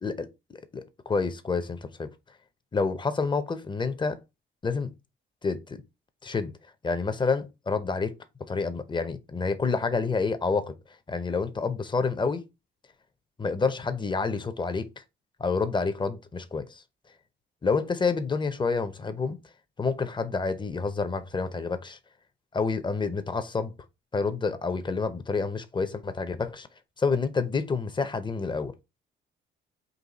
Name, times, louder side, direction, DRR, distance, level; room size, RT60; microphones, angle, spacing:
voice 1, 0.7-2.1 2.7-4.2 4.6-4.9 5.4-5.8 6.2-6.5 6.8-10.7 11.1-12.4 13.4-14.9 15.4-16.8 17.6-19.4 19.8-22.0 22.5-23.7 24.1-26.7 27.0-28.7, left 4 dB, 25° left, 0.6 m, -28 dB
4.0 x 2.6 x 4.0 m
cardioid pair, 90°, 20 cm